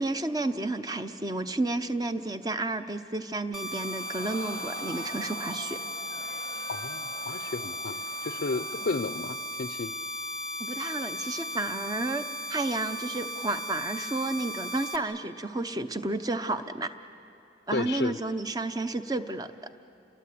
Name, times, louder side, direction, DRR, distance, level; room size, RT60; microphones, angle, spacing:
voice 1, 0.0-5.8 10.6-12.2 12.5-16.9 17.7-19.5, right 2 dB, 20° right, 10 dB, 0.7 m, -31 dB
sound 1, 3.5-15.0, equal, ahead, 1.1 m, -36 dB
Crowd, 3.7-9.2 9.6-9.7, equal, 80° right, 4.8 m, -45 dB
voice 2, 6.7-9.9 17.7-18.2, left 3 dB, 65° left, 10 dB, 0.5 m, -33 dB
29.5 x 22.0 x 8.5 m, 2.8 s
head